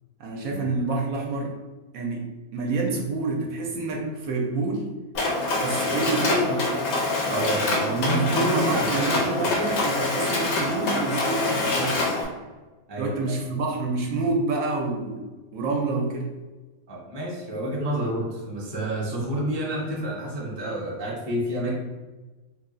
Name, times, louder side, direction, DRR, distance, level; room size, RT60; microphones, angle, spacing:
voice 1, 0.2-1.5 1.9-4.9 5.6-6.7 7.8-12.0 13.0-15.2 15.5-16.3, right 3 dB, 70° right, 0 dB, 1.0 m, -28 dB
Mechanisms, 5.1-12.2, left 2 dB, 70° left, 1.2 m, -25 dB
voice 2, 7.3-9.5 12.9-13.3 16.9-21.7, equal, 25° right, -4 dB, 0.6 m, -29 dB
3.3 x 2.3 x 3.8 m, 1.2 s
omnidirectional pair, 1.6 m